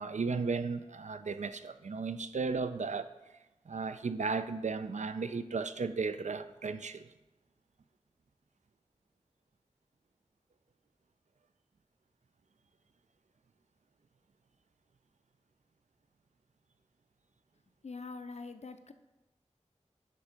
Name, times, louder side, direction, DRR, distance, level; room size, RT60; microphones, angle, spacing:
voice 1, 0.0-3.1 3.7-7.1, right 4 dB, 85° right, 0.4 m, -35 dB
voice 2, 17.8-18.9, left 4 dB, 65° left, 0.5 m, -44 dB
9.7 x 3.6 x 5.0 m
wide cardioid pair, 50°, 12 cm